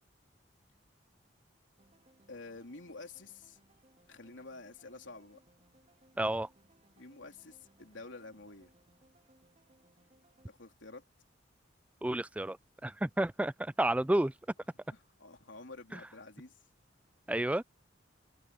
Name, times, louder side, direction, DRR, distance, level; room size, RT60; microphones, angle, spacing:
sound 1, 1.8-10.5, right 1 dB, 35° right, 3.4 m, -67 dB
voice 1, 2.3-3.6 4.1-5.4 7.0-8.7 10.5-11.0 14.9-16.6, left 3 dB, 85° left, 3.3 m, -49 dB
voice 2, 6.2-6.5 12.0-12.6 12.8-14.3 15.9-16.0 17.3-17.6, right 1 dB, 5° right, 0.3 m, -30 dB
open air
head